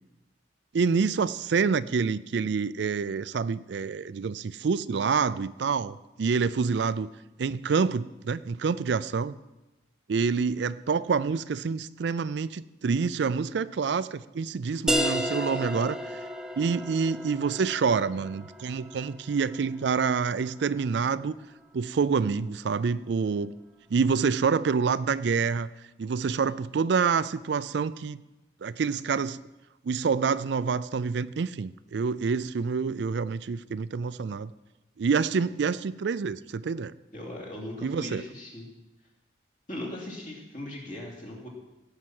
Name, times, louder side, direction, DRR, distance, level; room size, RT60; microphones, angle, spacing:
voice 1, 0.7-7.1 7.4-9.4 10.1-16.0 16.6-21.4 21.7-23.5 23.9-25.7 26.0-28.2 28.6-29.4 29.8-34.5 35.0-36.9 37.8-38.2, right 5 dB, 65° right, 16 dB, 0.4 m, -27 dB
sound 1, 14.9-20.2, equal, 5° right, 0.7 m, -33 dB
voice 2, 37.1-38.7 39.7-41.5, left 1 dB, 40° left, -1 dB, 3.0 m, -39 dB
17.0 x 5.8 x 7.7 m, 1.0 s
head